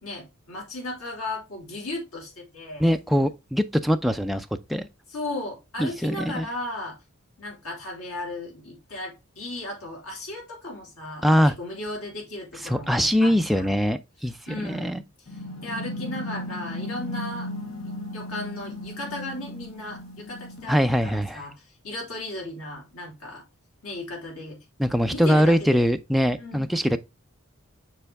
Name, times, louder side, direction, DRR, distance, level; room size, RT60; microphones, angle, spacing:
voice 1, 0.0-2.8 5.1-7.0 7.4-13.7 14.5-17.5 17.8-23.4 23.8-24.6 25.1-25.9 26.4-26.7, left 2 dB, 90° left, 3.2 m, -36 dB
voice 2, 2.8-4.9 5.8-6.5 11.2-11.5 12.6-14.4 14.6-15.0 20.7-21.4 24.8-27.0, equal, ahead, 0.3 m, -22 dB
sound 1, 15.3-20.9, left 1 dB, 70° left, 1.2 m, -36 dB
6.8 x 4.4 x 3.4 m
head